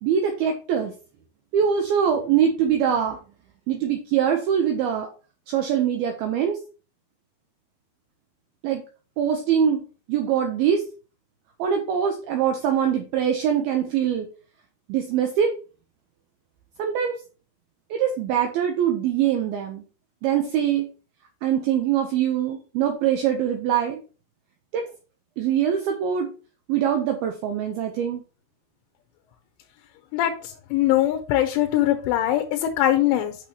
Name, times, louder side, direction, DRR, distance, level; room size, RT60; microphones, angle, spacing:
voice 1, 0.0-0.9 1.5-3.2 3.7-5.1 5.5-6.6 8.6-8.8 9.2-9.8 10.1-10.8 11.6-14.3 14.9-15.5 16.8-17.2 17.9-19.8 20.2-20.9 21.4-24.0 24.7-24.8 25.4-26.3 26.7-28.2, right 8 dB, 80° right, 4 dB, 2.2 m, -23 dB
voice 2, 30.1-33.4, left 13 dB, 90° left, 4 dB, 3.3 m, -22 dB
8.2 x 6.2 x 2.9 m, 0.35 s
omnidirectional pair, 5.5 m